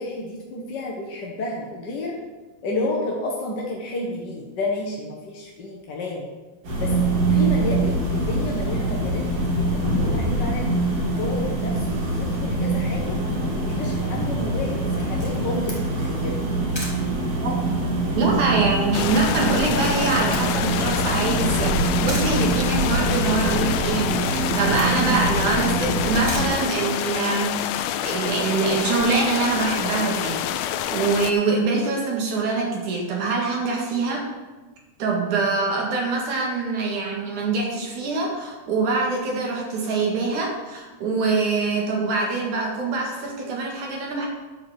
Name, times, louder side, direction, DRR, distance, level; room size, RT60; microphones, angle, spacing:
voice 1, 0.0-2.2 2.6-6.2 6.8-6.9 7.3-9.2 9.5-10.7 11.2-13.1 13.5-16.4, left 2 dB, 50° left, -2 dB, 1.3 m, -31 dB
sound 1, 6.6-26.5, right 2 dB, 90° right, 4.6 m, -24 dB
Camera, 14.9-27.4, left 1 dB, 10° left, 2.0 m, -42 dB
voice 2, 18.2-34.3 35.0-44.3, right 3 dB, 70° right, -1 dB, 3.2 m, -24 dB
sound 2, 18.9-31.3, left 11 dB, 85° left, 1.5 m, -27 dB
11.5 x 4.8 x 7.5 m, 1.2 s
omnidirectional pair, 3.7 m